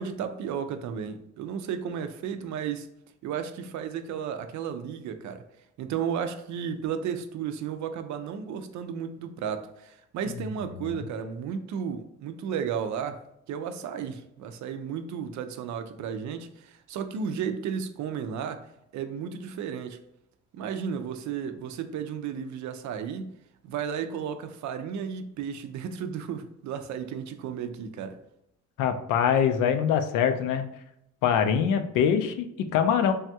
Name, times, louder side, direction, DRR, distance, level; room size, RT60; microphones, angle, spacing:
voice 1, 0.0-2.9 3.2-5.4 5.8-20.0 20.5-23.3 23.6-28.2, right 7 dB, 70° right, 0.4 m, -33 dB
voice 2, 28.8-30.6 31.2-33.1, left 8 dB, 90° left, 0.5 m, -23 dB
3.4 x 2.3 x 2.7 m
cardioid pair, 90°, 30 cm